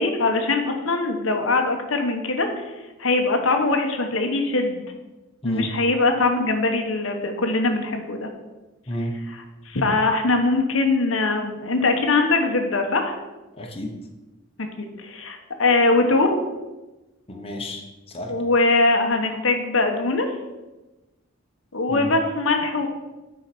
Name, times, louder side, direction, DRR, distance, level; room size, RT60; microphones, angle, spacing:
voice 1, 0.0-2.7 3.0-4.8 5.4-8.3 9.7-13.2 14.8-16.3 18.3-20.3 21.7-22.9, left 3 dB, 90° left, 4 dB, 1.1 m, -22 dB
voice 2, 5.4-5.7 8.9-9.2 13.6-13.9 17.3-17.8 18.1-18.3 21.9-22.1, left 1 dB, 30° left, 1 dB, 1.2 m, -30 dB
8.7 x 4.9 x 5.9 m, 1.1 s
head